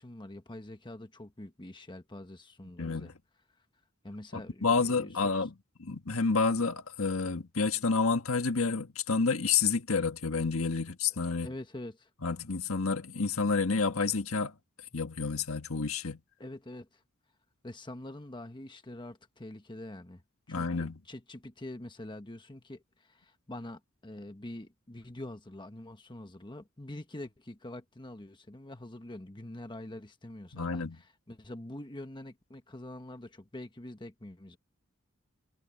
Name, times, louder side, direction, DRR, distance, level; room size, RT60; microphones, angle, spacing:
voice 1, 0.0-3.1 4.0-5.5 11.4-12.1 16.4-17.0 17.6-20.2 20.5-34.6, left 1 dB, 20° left, 1.3 m, -45 dB
voice 2, 2.8-3.1 4.3-5.5 5.8-11.5 12.2-14.5 14.9-16.2 20.5-21.0 30.5-31.0, left 4 dB, 80° left, 1.5 m, -29 dB
head